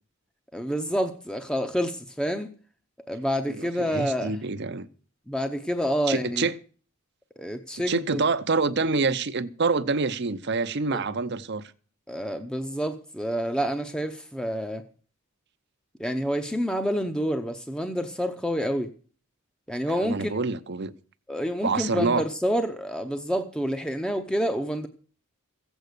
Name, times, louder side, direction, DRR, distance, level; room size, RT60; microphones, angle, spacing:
voice 1, 0.5-2.5 3.1-4.4 5.3-6.5 7.4-8.2 10.9-11.0 12.1-14.8 16.0-18.9 19.7-20.4 21.3-24.9, equal, 5° left, 0.7 m, -28 dB
voice 2, 3.5-4.9 6.1-6.5 7.9-11.6 19.9-20.9 21.6-22.2, right 4 dB, 50° right, 0.7 m, -26 dB
15.5 x 8.0 x 6.7 m
head